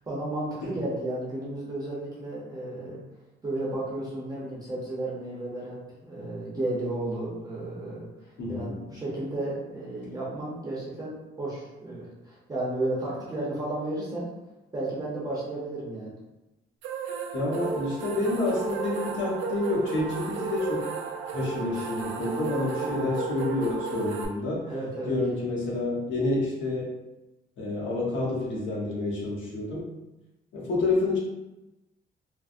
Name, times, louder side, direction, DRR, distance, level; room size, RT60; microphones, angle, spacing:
voice 1, 0.0-3.0 3.4-5.8 6.0-8.1 8.5-14.3 14.7-16.1 22.8-23.1 24.6-25.1, right 1 dB, 20° right, -6 dB, 0.6 m, -33 dB
voice 2, 8.4-8.8 17.3-20.9 21.3-24.6 25.1-26.9 27.6-29.9 30.5-31.2, left 2 dB, 80° left, -5 dB, 1.0 m, -28 dB
sound 1, 16.8-24.3, right 5 dB, 85° right, 0.4 m, -34 dB
3.3 x 2.1 x 2.5 m, 0.98 s
cardioid pair, 165°, 19 cm